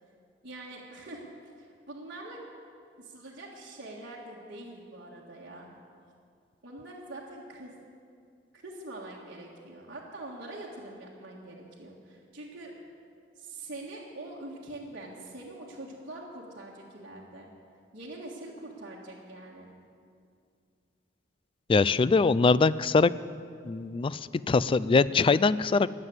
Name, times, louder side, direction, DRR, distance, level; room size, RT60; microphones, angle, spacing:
voice 1, 0.4-1.3 1.6-2.4 3.0-5.7 6.6-7.7 8.5-12.7 13.4-17.5 17.9-19.7, right 2 dB, 60° right, -6 dB, 1.8 m, -44 dB
voice 2, 21.7-23.1 23.6-25.9, left 4 dB, 30° left, 17 dB, 0.3 m, -23 dB
20.5 x 7.6 x 8.1 m, 2.3 s
head